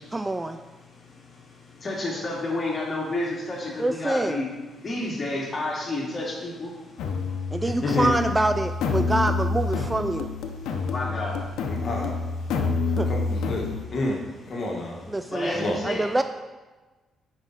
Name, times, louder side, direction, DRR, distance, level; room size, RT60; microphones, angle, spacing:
voice 1, 0.1-0.6 3.8-4.4 7.5-10.3 13.0-13.1 15.1-16.2, right 2 dB, 15° right, 9 dB, 0.3 m, -26 dB
voice 2, 1.8-4.5 4.8-6.7 10.9-11.4 15.3-16.2, left 2 dB, 30° left, -4 dB, 2.6 m, -30 dB
sound 1, 7.0-13.8, left 4 dB, 80° left, 0.8 m, -28 dB
voice 3, 7.6-8.1 11.7-12.1 13.1-13.7 13.9-14.2 14.5-15.0 15.5-15.8, left 2 dB, 50° left, -1 dB, 1.6 m, -28 dB
9.6 x 5.2 x 4.1 m, 1.3 s
cardioid pair, 90°, 0 cm